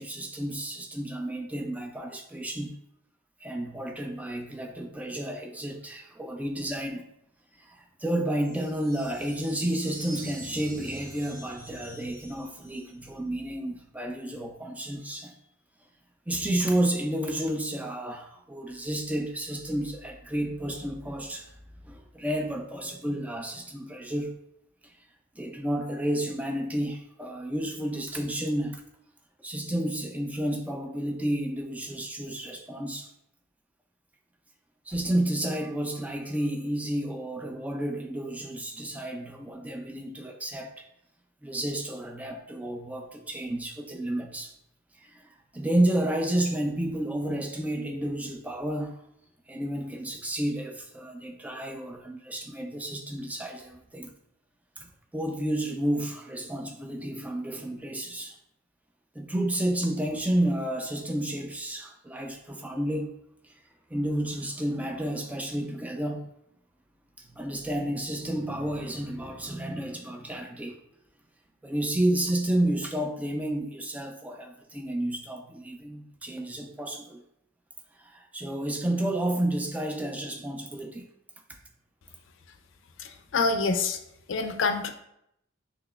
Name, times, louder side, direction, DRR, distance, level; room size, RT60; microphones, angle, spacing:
voice 1, 0.0-2.7 3.4-7.1 7.6-15.4 16.3-21.5 21.8-24.3 24.8-24.9 25.4-28.8 29.4-33.1 34.9-40.8 41.4-44.5 44.9-49.0 49.5-54.1 54.8-54.9 55.1-58.4 59.1-63.2 63.4-63.6 63.9-66.3 67.2-70.8 71.6-77.2 78.0-81.1, right 1 dB, 5° right, 3 dB, 0.4 m, -31 dB
sound 1, 8.4-13.2, right 1 dB, 45° right, 1.0 m, -47 dB
voice 2, 83.0-84.0 84.3-84.9, left 4 dB, 60° left, 7 dB, 0.4 m, -26 dB
5.9 x 2.9 x 2.3 m, 0.77 s
head